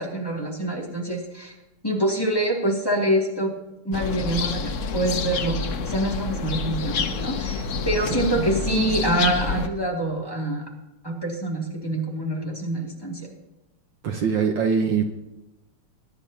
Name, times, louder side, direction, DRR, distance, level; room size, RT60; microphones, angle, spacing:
voice 1, 0.0-1.5 1.8-3.5 3.8-5.6 5.8-10.6 11.0-13.2, right 1 dB, 10° left, -4 dB, 2.4 m, -25 dB
sound 1, 3.9-9.7, left 4 dB, 80° left, 0.6 m, -28 dB
voice 2, 8.2-8.5 14.0-15.0, right 6 dB, 65° right, 4 dB, 1.5 m, -23 dB
21.0 x 10.5 x 2.8 m, 0.98 s
omnidirectional pair, 2.4 m